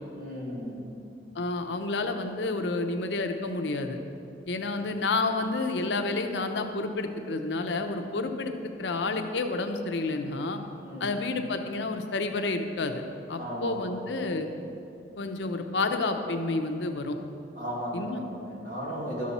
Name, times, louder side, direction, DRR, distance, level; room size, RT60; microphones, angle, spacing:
voice 1, 0.1-0.9 4.8-4.9 10.8-11.1 13.4-14.2 17.6-19.3, equal, 50° right, -5 dB, 2.4 m, -36 dB
voice 2, 1.3-4.0 4.5-8.5 8.8-10.6 11.0-13.0 13.3-14.5 15.2-17.2 17.9-18.2, left 3 dB, 80° left, 6 dB, 0.7 m, -30 dB
12.0 x 7.5 x 4.2 m, 2.6 s
head